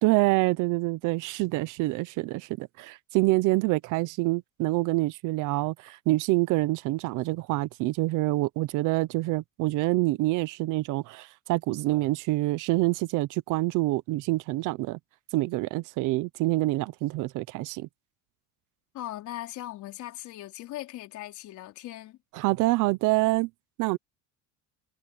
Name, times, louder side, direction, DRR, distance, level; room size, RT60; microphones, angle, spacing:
voice 1, 0.0-15.0 15.3-17.9 22.4-23.5 23.8-24.0, right 20 dB, 50° right, 0.7 m, -26 dB
voice 2, 18.9-22.2, left 14 dB, 50° left, 4.3 m, -39 dB
cardioid pair, 175°, 39 cm